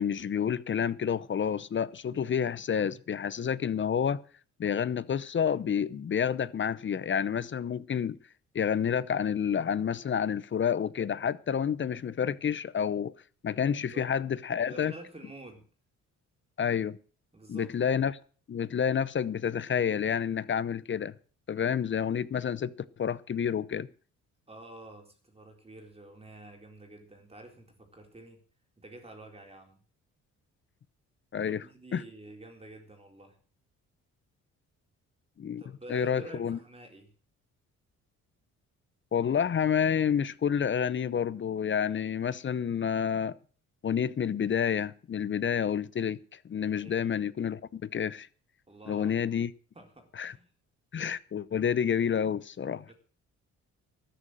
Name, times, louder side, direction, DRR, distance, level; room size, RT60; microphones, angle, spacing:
voice 1, 0.0-4.2 4.6-8.2 8.5-13.1 13.4-14.9 16.6-17.0 17.5-18.2 18.5-21.1 21.5-22.7 23.0-23.9 31.3-31.6 31.9-32.0 35.4-35.6 35.9-36.6 39.1-43.4 43.8-48.3 48.9-49.5 50.2-50.3 50.9-52.8, left 8 dB, 40° left, 0.8 m, -29 dB
voice 2, 14.6-15.7 17.3-17.7 24.5-28.4 28.8-29.8 31.4-33.4 35.6-37.1 46.8-47.2 48.7-49.2 49.8-50.5 52.9-53.0, right 1 dB, 20° right, 4.0 m, -49 dB
13.0 x 10.0 x 6.4 m
cardioid pair, 90°, 30 cm